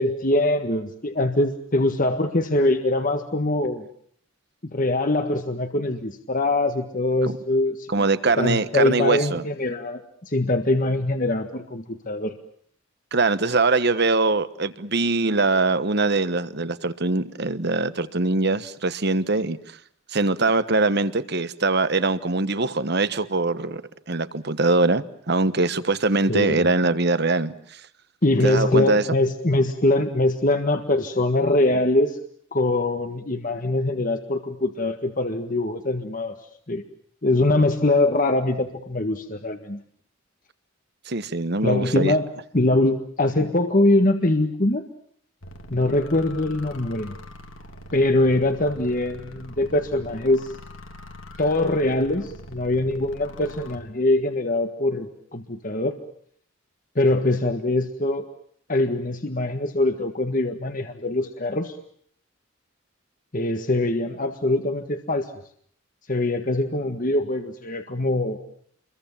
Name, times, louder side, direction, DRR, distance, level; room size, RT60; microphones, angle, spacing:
voice 1, 0.0-3.9 4.6-8.1 8.4-10.0 10.3-12.3 26.3-26.6 28.2-32.2 32.5-36.3 36.7-36.8 37.2-39.8 41.6-42.3 42.5-44.8 45.7-47.2 47.9-50.5 51.4-56.0 57.0-58.3 58.7-61.8 63.3-65.2 66.1-68.4, left 2 dB, 40° left, 1.6 m, -23 dB
voice 2, 7.9-9.4 13.1-19.6 20.1-23.8 24.1-27.8 28.4-29.0 41.1-42.2, right 3 dB, 55° right, 1.3 m, -22 dB
sound 1, 45.4-53.8, left 1 dB, 80° left, 3.4 m, -43 dB
28.5 x 22.5 x 7.3 m
head